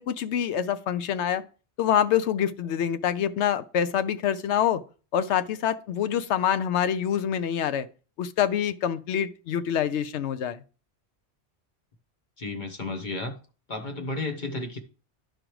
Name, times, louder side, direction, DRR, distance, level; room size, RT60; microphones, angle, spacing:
voice 1, 0.0-1.4 1.8-4.8 5.1-7.9 8.2-10.6, left 9 dB, 85° left, 0.9 m, -26 dB
voice 2, 12.4-13.3 13.7-14.8, left 2 dB, 45° left, 1.2 m, -32 dB
12.0 x 5.0 x 3.0 m
omnidirectional pair, 1.1 m